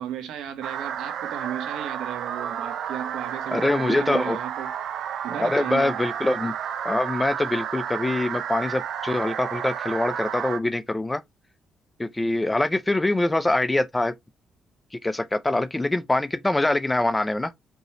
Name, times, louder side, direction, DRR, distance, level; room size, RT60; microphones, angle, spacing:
voice 1, 0.0-4.7 5.2-6.0, right 10 dB, 90° right, 1.2 m, -34 dB
sound 1, 0.6-10.6, right 8 dB, 70° right, 0.6 m, -31 dB
voice 2, 3.5-4.4 5.4-6.5 6.8-11.2 12.0-14.1 15.0-17.5, left 2 dB, 15° left, 0.6 m, -24 dB
5.4 x 3.0 x 2.9 m
cardioid pair, 90°, 0 cm